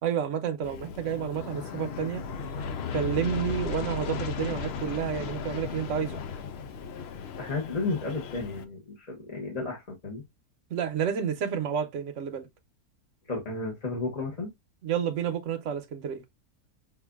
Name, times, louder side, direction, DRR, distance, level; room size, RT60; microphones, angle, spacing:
voice 1, 0.0-2.2 2.9-6.2 10.7-12.5 14.8-16.2, right 8 dB, 60° right, 1.0 m, -30 dB
Aircraft, 0.6-8.6, left 6 dB, 65° left, 0.7 m, -36 dB
voice 2, 7.4-10.2 13.2-14.5, left 3 dB, 30° left, 0.9 m, -33 dB
5.8 x 2.5 x 2.3 m
omnidirectional pair, 1.6 m